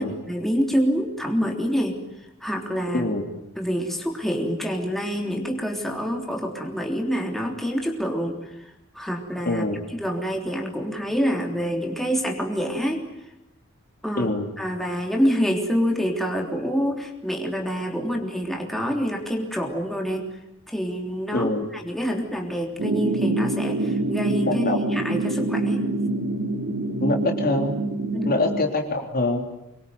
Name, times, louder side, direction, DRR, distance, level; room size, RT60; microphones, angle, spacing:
voice 1, 0.0-2.0 2.4-3.1 3.6-8.4 9.0-9.7 9.9-13.0 14.0-14.3 14.6-20.3 20.7-25.9 28.1-28.3, equal, ahead, 1 dB, 3.5 m, -26 dB
voice 2, 2.9-3.2 9.5-9.8 14.2-14.5 21.3-21.7 24.5-24.8 27.0-27.7 28.2-29.4, left 2 dB, 45° left, 4 dB, 3.5 m, -24 dB
sound 1, 22.8-28.6, right 2 dB, 70° right, 2.5 m, -25 dB
25.0 x 23.0 x 9.5 m, 0.90 s
head